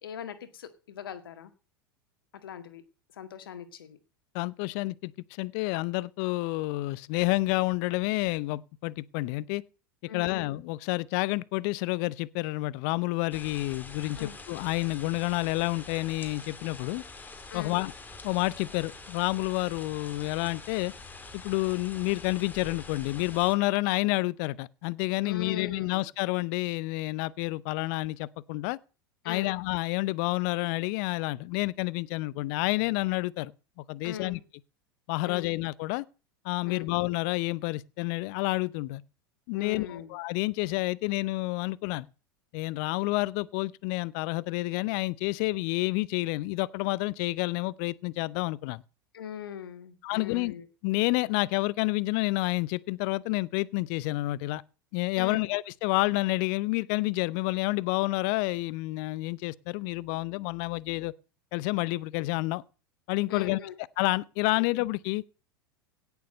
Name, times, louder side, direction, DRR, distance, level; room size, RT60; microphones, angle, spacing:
voice 1, 0.0-1.5 2.4-2.8 3.1-4.0 10.1-10.5 14.2-14.4 17.5-17.8 25.2-26.0 29.2-29.6 34.0-34.4 35.2-35.5 36.6-36.9 39.5-40.1 49.1-50.7 55.2-55.5 63.3-63.7 64.6-64.7, left 9 dB, 70° left, 1.9 m, -40 dB
voice 2, 4.3-9.6 10.1-17.0 17.5-17.9 18.2-20.9 21.3-28.8 29.2-33.5 33.9-34.4 35.1-36.0 36.4-39.0 39.5-42.1 42.5-48.8 50.0-50.5 50.8-54.6 54.9-61.1 61.5-62.6 63.1-63.6 64.0-65.2, left 21 dB, 50° left, 0.6 m, -29 dB
sound 1, 13.3-23.5, left 3 dB, 15° left, 2.5 m, -45 dB
17.0 x 7.1 x 6.6 m
figure-of-eight pair, 85°, 12 cm